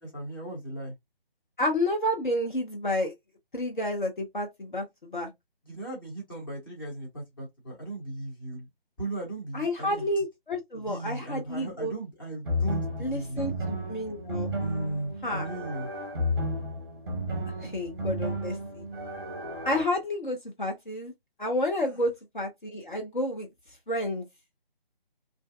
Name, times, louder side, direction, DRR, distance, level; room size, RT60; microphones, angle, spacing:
voice 1, 0.0-0.9 5.6-8.7 9.0-10.1 10.7-13.5 14.6-15.9, right 2 dB, 20° left, 1.0 m, -36 dB
voice 2, 1.6-3.1 3.5-5.3 9.5-11.9 13.0-14.5 15.2-15.5 17.6-18.8 19.6-21.1 21.4-23.5 23.9-24.3, left 1 dB, 55° left, 0.7 m, -30 dB
sound 1, 12.4-19.8, equal, 25° right, 0.7 m, -33 dB
2.5 x 2.2 x 2.3 m
figure-of-eight pair, 155°, 30 cm